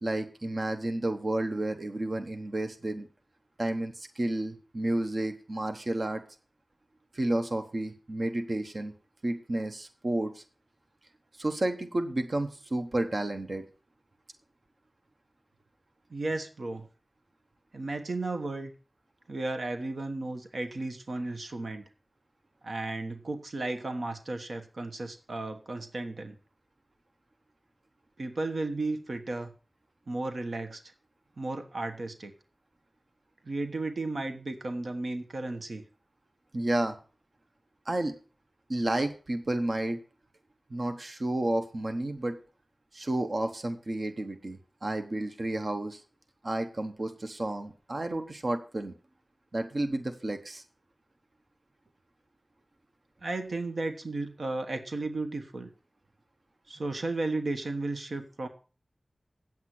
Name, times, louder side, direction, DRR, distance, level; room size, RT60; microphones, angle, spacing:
voice 1, 0.0-3.1 3.6-6.2 7.1-8.9 9.2-10.4 11.4-13.7 36.5-37.0 37.9-38.1 38.7-40.0 40.7-42.4 42.9-46.0 46.4-48.9 49.5-50.6, right 1 dB, 50° right, 7 dB, 1.1 m, -31 dB
voice 2, 16.1-16.9 17.7-18.7 19.3-21.8 22.6-26.3 28.2-29.5 30.1-30.8 31.4-32.3 33.4-35.8 53.2-55.7 56.7-58.5, right 2 dB, 75° right, 7 dB, 1.2 m, -34 dB
8.9 x 8.1 x 5.9 m, 0.38 s
wide cardioid pair, 65°, 0 cm